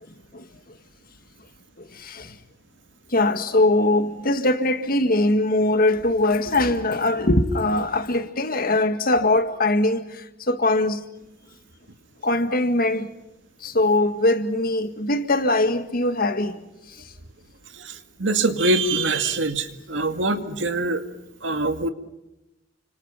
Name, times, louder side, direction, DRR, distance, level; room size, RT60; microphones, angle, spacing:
voice 1, 3.1-10.0 10.5-11.0 12.2-13.1 13.6-16.5, left 2 dB, 50° left, 1.9 m, -21 dB
voice 2, 17.8-21.0 21.4-21.9, right 2 dB, 75° right, 2.2 m, -24 dB
30.0 x 26.5 x 5.8 m
head